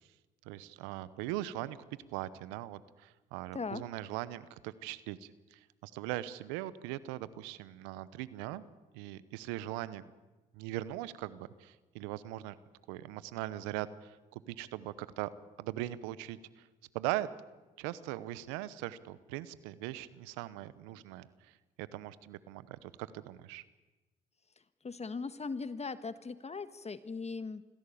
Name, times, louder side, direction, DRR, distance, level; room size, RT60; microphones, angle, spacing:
voice 1, 0.4-1.8 2.1-8.6 8.9-10.0 10.5-12.6 12.9-15.3 15.6-16.7 16.9-17.3 17.8-23.6, right 15 dB, 90° right, 17 dB, 0.9 m, -40 dB
voice 2, 24.8-27.6, left 4 dB, 35° left, 13 dB, 1.4 m, -39 dB
24.5 x 16.0 x 8.5 m, 1.2 s
hypercardioid pair, 50°, 19 cm